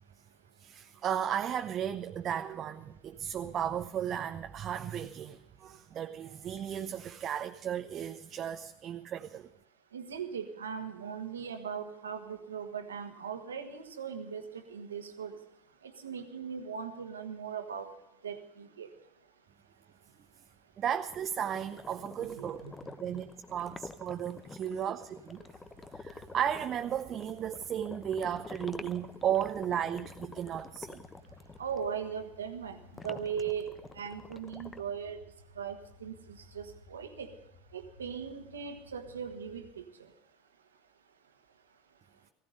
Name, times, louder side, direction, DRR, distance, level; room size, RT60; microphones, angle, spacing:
voice 1, 0.6-9.5 20.8-22.6 23.0-25.4 25.9-31.1, right 9 dB, 40° right, 7 dB, 0.7 m, -35 dB
voice 2, 9.9-15.4 16.0-17.9 18.2-18.9 22.4-22.7 31.6-32.8 33.0-33.7 33.9-35.2 35.6-35.7 36.0-36.1 36.5-37.3 37.7-39.8, right 7 dB, 85° right, 7 dB, 1.5 m, -39 dB
sound 1, 21.1-31.9 32.9-34.8, left 3 dB, 20° left, 0.7 m, -48 dB
sound 2, 25.4-39.7, left 3 dB, 80° left, 1.5 m, -58 dB
16.0 x 15.5 x 5.2 m, 0.84 s
hypercardioid pair, 80°, 0 cm